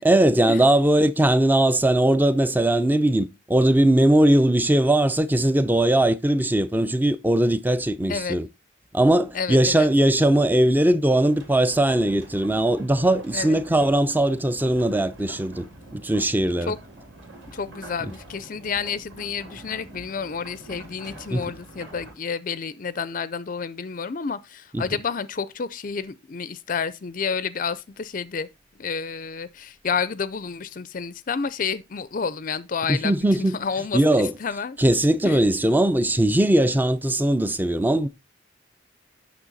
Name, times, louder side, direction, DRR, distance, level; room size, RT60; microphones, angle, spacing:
voice 1, 0.0-8.5 8.9-15.7 15.9-16.7 21.3-21.4 24.7-24.8 32.9-33.6 33.9-34.3 34.8-38.1, right 1 dB, 10° right, 0.5 m, -20 dB
voice 2, 9.3-9.9 13.3-13.6 16.7-16.8 17.5-28.5 28.8-34.8 35.2-35.4, left 5 dB, 45° left, 0.5 m, -30 dB
sound 1, 11.2-22.1, right 2 dB, 75° right, 3.3 m, -45 dB
9.0 x 6.4 x 4.0 m
head